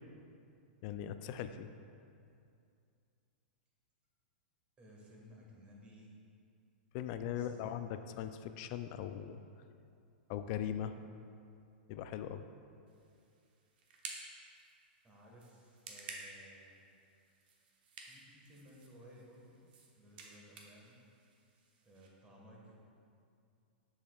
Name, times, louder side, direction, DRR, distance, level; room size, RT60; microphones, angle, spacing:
voice 1, 0.8-1.7 6.9-9.4 10.3-10.9 11.9-12.4, left 10 dB, 45° left, 10 dB, 0.3 m, -40 dB
voice 2, 4.8-6.1 7.3-7.8 15.0-16.8 18.0-19.6 19.9-21.0 21.8-22.8, equal, 20° right, -3 dB, 1.4 m, -58 dB
sound 1, 12.9-22.1, right 4 dB, 60° right, 0.9 m, -54 dB
7.1 x 6.3 x 2.3 m, 2.5 s
hypercardioid pair, 115°, 6 cm